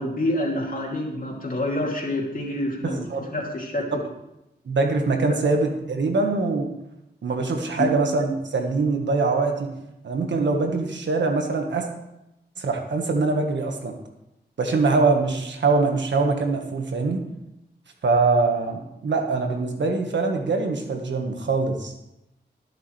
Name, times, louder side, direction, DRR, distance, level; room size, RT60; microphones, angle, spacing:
voice 1, 0.0-3.9 5.3-5.4 7.8-7.9, left 1 dB, 50° left, -1 dB, 2.8 m, -27 dB
voice 2, 2.8-3.3 4.6-6.7 7.2-9.7 10.0-11.9 12.6-13.9 14.6-17.2 18.0-21.9, right 3 dB, 80° right, 3 dB, 1.6 m, -23 dB
20.0 x 6.7 x 3.3 m, 0.89 s
cardioid pair, 65°, 18 cm